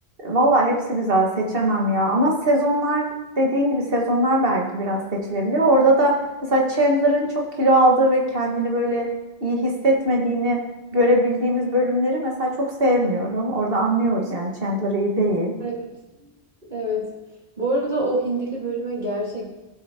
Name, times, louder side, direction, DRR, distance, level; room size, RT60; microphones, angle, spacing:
voice 1, 0.2-3.1 3.4-6.2 6.4-9.1 9.4-10.6 10.9-15.5, right 1 dB, 60° right, -1 dB, 1.9 m, -20 dB
voice 2, 15.6-16.3 16.7-17.1 17.6-19.5, right 1 dB, 45° right, -5 dB, 2.0 m, -26 dB
15.0 x 8.1 x 2.9 m, 1.0 s
omnidirectional pair, 1.1 m